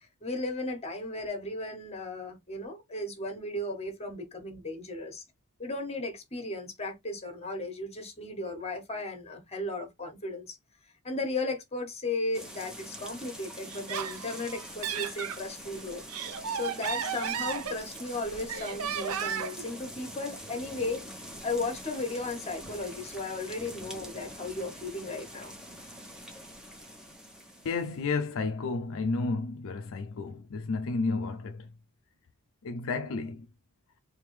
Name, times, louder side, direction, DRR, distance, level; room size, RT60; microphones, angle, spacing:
voice 1, 0.2-5.2 5.6-10.6 11.0-16.0 16.5-21.1 21.4-25.5, left 2 dB, 30° left, 1.4 m, -35 dB
sound 1, 12.3-28.1, equal, 5° right, 1.1 m, -45 dB
Laughter, 13.7-15.4 15.9-18.1 18.5-19.6, right 7 dB, 70° right, 0.7 m, -34 dB
voice 2, 27.6-31.7 32.6-33.5, left 3 dB, 65° left, 0.5 m, -32 dB
3.5 x 3.4 x 3.2 m
head